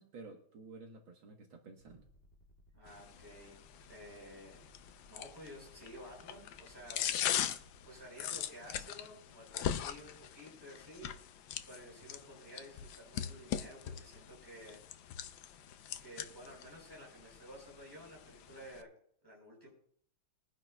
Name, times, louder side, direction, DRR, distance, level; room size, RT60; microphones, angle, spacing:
voice 1, 0.0-2.0, right 3 dB, 75° right, 2 dB, 2.0 m, -52 dB
sound 1, 1.8-8.0, right 1 dB, 30° left, 2.2 m, -64 dB
voice 2, 2.7-3.6 3.9-4.6 5.1-7.0 7.9-11.1 11.7-14.8 16.0-18.9 19.2-19.7, equal, 10° right, -4 dB, 5.9 m, -52 dB
sound 2, 2.9-18.8, left 10 dB, 75° left, 1.3 m, -41 dB
22.0 x 10.5 x 2.3 m, 0.65 s
omnidirectional pair, 2.2 m